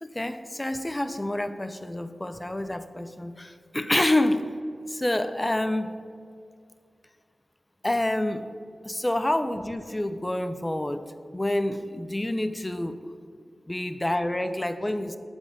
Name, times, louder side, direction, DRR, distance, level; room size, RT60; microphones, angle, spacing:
voice 1, 0.0-4.5 4.9-5.9 7.8-8.5 8.9-11.0 11.3-13.0 13.7-15.2, left 1 dB, 20° left, 10 dB, 0.4 m, -28 dB
7.6 x 3.7 x 5.0 m, 2.2 s
cardioid pair, 50°, 0 cm